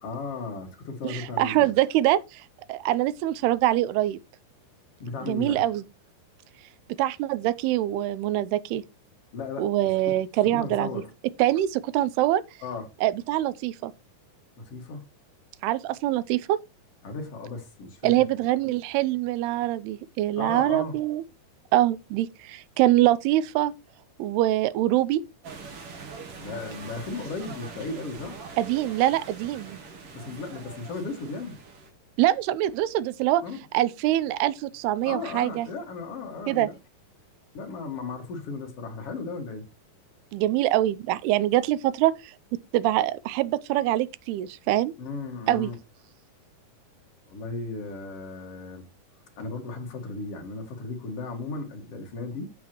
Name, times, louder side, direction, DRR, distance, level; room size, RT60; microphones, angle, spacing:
voice 1, 0.0-1.7 5.0-5.6 9.3-10.2 10.5-11.1 12.6-12.9 14.6-15.1 17.0-18.3 20.4-21.0 26.4-28.4 30.1-31.6 33.4-33.6 35.0-36.8 37.5-39.7 45.0-45.7 47.3-48.9 49.4-52.5, left 3 dB, 45° left, 2.6 m, -36 dB
voice 2, 1.0-2.4 2.7-4.2 5.2-5.8 7.0-8.8 9.6-11.0 11.4-12.4 13.0-13.9 15.6-16.6 18.0-21.2 21.7-23.7 24.2-25.2 28.6-29.8 32.2-33.4 33.7-35.7 36.5-36.7 40.3-42.3 42.7-44.9 45.5-45.7, right 14 dB, 90° right, 2.7 m, -24 dB
sound 1, 25.4-31.9, right 5 dB, 50° right, 2.0 m, -43 dB
14.5 x 5.7 x 3.0 m
omnidirectional pair, 4.5 m